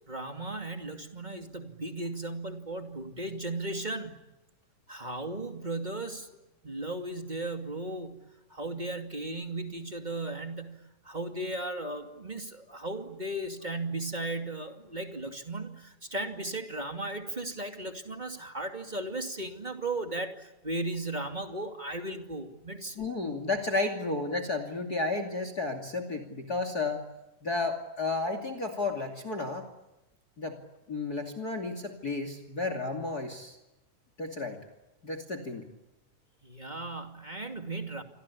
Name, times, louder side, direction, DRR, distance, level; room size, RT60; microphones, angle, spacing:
voice 1, 0.1-4.2 4.9-6.3 6.6-23.1 36.4-38.0, right 2 dB, 15° right, 5 dB, 2.1 m, -36 dB
voice 2, 23.0-27.0 27.4-29.7 30.4-30.6 30.9-33.6 34.2-34.6 35.0-35.6, left 3 dB, 30° left, 9 dB, 2.9 m, -32 dB
29.0 x 24.5 x 8.5 m, 0.98 s
omnidirectional pair, 3.7 m